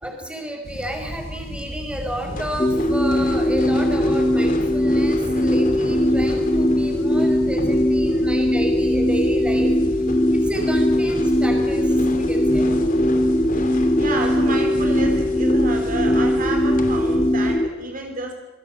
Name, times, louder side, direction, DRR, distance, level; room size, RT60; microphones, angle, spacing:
voice 1, 0.0-9.7 10.3-12.7 14.2-14.3, right 1 dB, 5° right, 3 dB, 5.6 m, -32 dB
sound 1, 0.6-17.5, equal, 80° left, 7.8 m, -34 dB
sound 2, 2.3-17.2, left 1 dB, 40° left, 2.6 m, -34 dB
sound 3, 2.6-17.7, left 1 dB, 15° left, 0.9 m, -20 dB
voice 2, 13.0-18.3, right 3 dB, 40° right, 4 dB, 3.1 m, -31 dB
27.5 x 20.5 x 8.6 m, 1.2 s
head